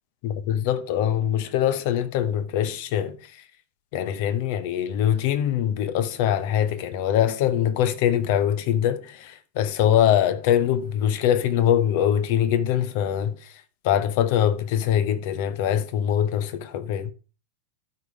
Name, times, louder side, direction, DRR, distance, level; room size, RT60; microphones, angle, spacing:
voice 1, 0.2-3.4 3.9-13.5 13.8-17.1, left 10 dB, 50° left, 0.9 m, -23 dB
12.0 x 4.8 x 4.9 m
figure-of-eight pair, 90°, 0 cm